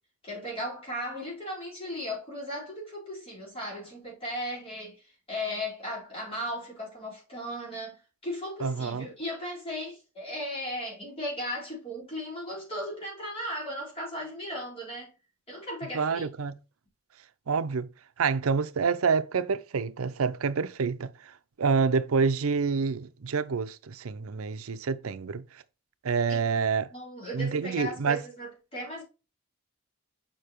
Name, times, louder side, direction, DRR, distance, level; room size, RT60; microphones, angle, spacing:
voice 1, 0.2-15.1 15.5-16.3 26.3-26.4 26.9-29.0, equal, 25° left, 4.3 m, -36 dB
voice 2, 8.6-9.1 15.9-16.5 17.5-17.9 18.2-25.4 26.0-26.9 27.3-28.2, right 5 dB, 80° right, 0.6 m, -27 dB
6.7 x 5.8 x 3.0 m
head